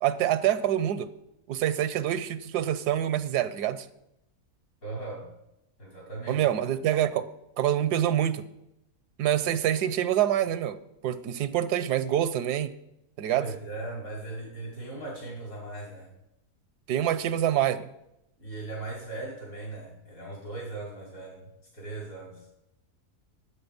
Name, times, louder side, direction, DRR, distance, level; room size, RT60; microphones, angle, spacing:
voice 1, 0.0-1.1 1.5-3.9 6.3-7.3 7.6-8.5 9.2-12.8 13.2-13.5 16.9-17.9, right 11 dB, 85° right, 14 dB, 1.3 m, -26 dB
voice 2, 4.8-5.3 5.8-6.4 13.3-16.1 18.4-22.4, right 2 dB, 80° left, -3 dB, 5.6 m, -38 dB
12.5 x 8.6 x 5.2 m, 0.85 s
omnidirectional pair, 1.7 m